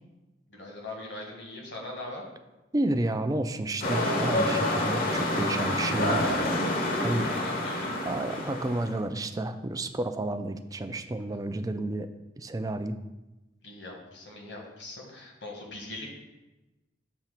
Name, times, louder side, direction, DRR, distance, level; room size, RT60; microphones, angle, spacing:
voice 1, 0.5-2.2 6.8-8.0 13.6-16.1, left 2 dB, 70° left, 0 dB, 1.5 m, -41 dB
voice 2, 2.7-6.3 7.0-7.3 8.0-12.1 12.4-13.0, right 1 dB, 20° right, 9 dB, 0.4 m, -31 dB
sound 1, 3.8-8.9, left 1 dB, 50° left, 0.9 m, -28 dB
7.1 x 2.9 x 5.8 m, 1.0 s
head